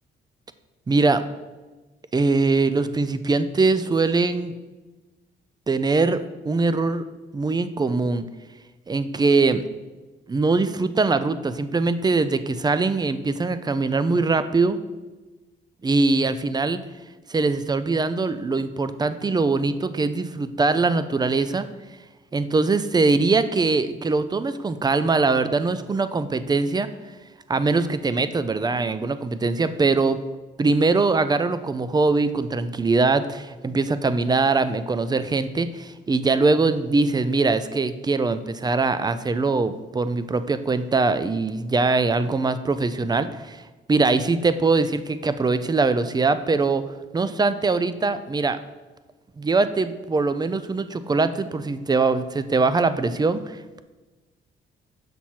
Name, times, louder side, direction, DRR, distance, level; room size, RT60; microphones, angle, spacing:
voice 1, 0.9-1.2 2.1-4.5 5.7-7.0 7.3-8.2 8.9-9.6 10.3-14.8 15.8-16.8 17.3-21.7 22.3-26.9 27.5-30.2 30.6-43.6 43.9-46.8 47.1-48.6 49.4-53.8, right 3 dB, 20° right, 12 dB, 0.5 m, -22 dB
7.3 x 6.0 x 4.3 m, 1.2 s
cardioid pair, 90°, 20 cm